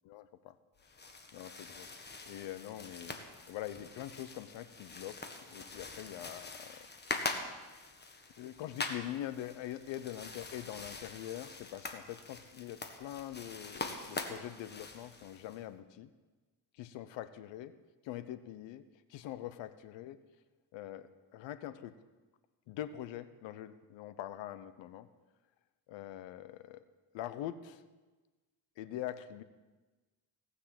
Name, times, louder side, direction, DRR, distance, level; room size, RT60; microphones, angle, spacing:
voice 1, 0.1-0.6 1.3-1.9 2.3-3.2 3.5-5.2 5.5-6.9 8.4-16.1 16.8-17.7 18.0-18.8 19.1-20.2 20.7-21.9 22.7-25.1 25.9-26.8 27.1-27.8 28.8-29.4, left 12 dB, 85° left, 13 dB, 0.9 m, -43 dB
sound 1, 0.8-15.6, left 3 dB, 25° left, 1.5 m, -44 dB
18.0 x 6.5 x 7.6 m, 1.2 s
cardioid pair, 105°, 43 cm